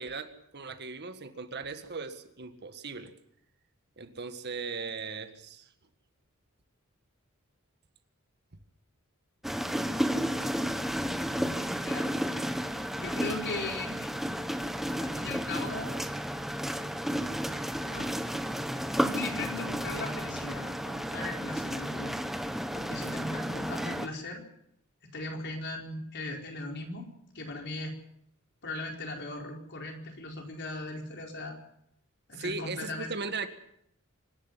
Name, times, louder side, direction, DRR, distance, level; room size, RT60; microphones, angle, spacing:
voice 1, 0.0-3.1 4.0-5.7 10.8-11.0 32.3-33.5, right 4 dB, 50° right, 9 dB, 1.7 m, -38 dB
sound 1, 9.4-24.1, equal, ahead, 1.1 m, -32 dB
voice 2, 12.9-14.1 15.0-15.9 17.8-18.1 19.0-22.1 22.7-24.4 25.1-27.1 27.3-28.0 28.6-31.6 32.3-33.1, left 2 dB, 55° left, 2 dB, 4.7 m, -38 dB
25.5 x 11.5 x 9.8 m, 0.73 s
head